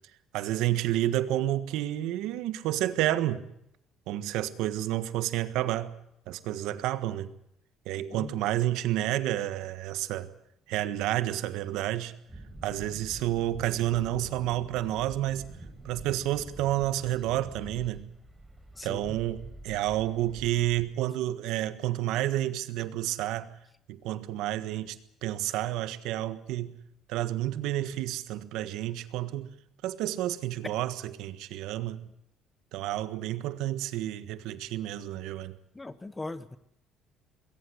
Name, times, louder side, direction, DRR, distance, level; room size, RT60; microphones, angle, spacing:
voice 1, 0.3-3.5 4.1-6.0 6.3-7.3 7.8-10.3 10.7-12.2 12.6-15.6 15.8-18.1 18.8-23.5 23.9-25.0 25.2-26.8 27.1-29.5 29.8-32.1 32.7-35.6, right 14 dB, 85° right, 1.5 m, -30 dB
sound 1, 12.3-20.8, right 1 dB, 5° right, 4.8 m, -46 dB
voice 2, 18.7-19.2 35.7-36.6, left 2 dB, 15° left, 1.0 m, -39 dB
21.0 x 18.5 x 8.0 m
cardioid pair, 135°, 0 cm